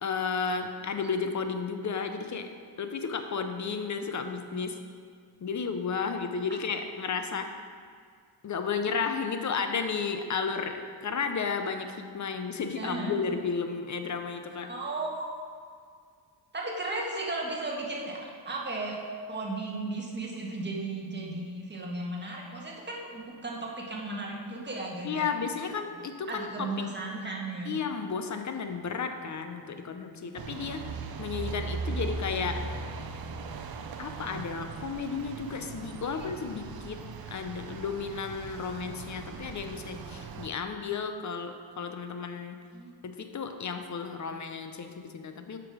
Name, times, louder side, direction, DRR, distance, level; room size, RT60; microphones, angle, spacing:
voice 1, 0.0-2.5 2.8-4.8 5.4-7.5 8.4-14.7 25.0-26.9 27.7-30.9 31.2-32.7 34.0-37.0 37.3-42.6 43.0-45.6, left 5 dB, 40° left, 7 dB, 0.7 m, -33 dB
voice 2, 12.7-13.2 14.6-15.3 16.5-19.0 19.3-25.3 26.3-27.7 36.1-36.3 42.7-42.9, right 2 dB, 20° right, -3 dB, 1.6 m, -35 dB
sound 1, 30.4-40.5, right 4 dB, 50° right, 0.7 m, -39 dB
7.6 x 6.1 x 4.9 m, 2.1 s
cardioid pair, 100°, 47 cm